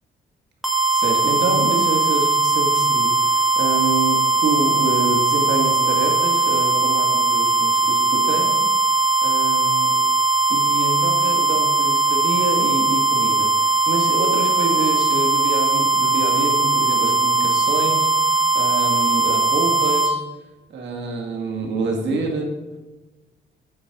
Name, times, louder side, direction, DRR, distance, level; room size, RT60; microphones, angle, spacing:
sound 1, 0.6-20.1, right 3 dB, ahead, 1.0 m, -19 dB
voice 1, 0.9-8.6 8.9-9.9 10.5-20.2 20.7-22.6, right 3 dB, 70° right, 0 dB, 1.9 m, -27 dB
8.7 x 5.0 x 6.0 m, 1.1 s
wide cardioid pair, 175°, 19 cm